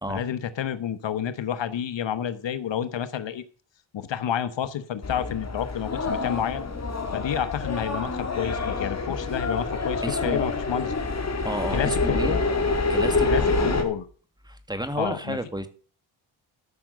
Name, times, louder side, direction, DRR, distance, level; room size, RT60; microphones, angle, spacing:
voice 1, 0.1-3.4 3.9-6.6 7.1-10.9 11.7-12.5 13.2-14.0 15.0-15.4, left 9 dB, 60° left, 13 dB, 1.1 m, -29 dB
sound 1, 5.0-13.8, left 3 dB, 30° left, 2.7 m, -27 dB
voice 2, 10.0-10.4 11.4-12.4 12.9-13.9 14.4-15.7, right 1 dB, 10° right, 10 dB, 1.9 m, -31 dB
13.5 x 5.9 x 6.5 m, 0.41 s
cardioid pair, 70°, 49 cm